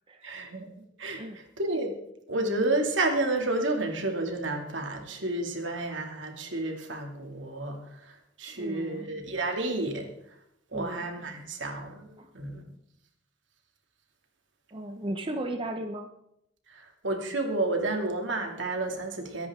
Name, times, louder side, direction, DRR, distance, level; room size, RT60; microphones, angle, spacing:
voice 1, 0.2-0.7 1.0-1.9 2.3-10.1 10.7-12.6 16.7-19.5, right 2 dB, 70° right, 3 dB, 2.5 m, -31 dB
voice 2, 8.5-9.1 10.7-11.1 12.2-12.3 14.7-16.1, right 1 dB, 25° right, 5 dB, 0.9 m, -35 dB
23.0 x 10.5 x 3.7 m, 0.77 s
head